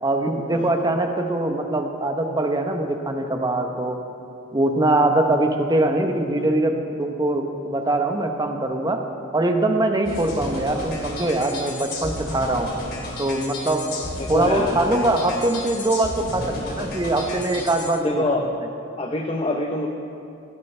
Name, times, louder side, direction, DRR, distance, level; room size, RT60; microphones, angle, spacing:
voice 1, 0.0-4.0 4.5-9.0 9.3-12.7 13.2-13.9 14.3-18.2, right 2 dB, 20° right, 4 dB, 0.9 m, -22 dB
sound 1, 10.0-17.9, left 1 dB, 55° left, 2.9 m, -33 dB
voice 2, 14.2-14.8 18.0-18.4 19.0-19.9, left 2 dB, 30° left, 2 dB, 0.7 m, -25 dB
17.0 x 14.0 x 3.3 m, 2.6 s
head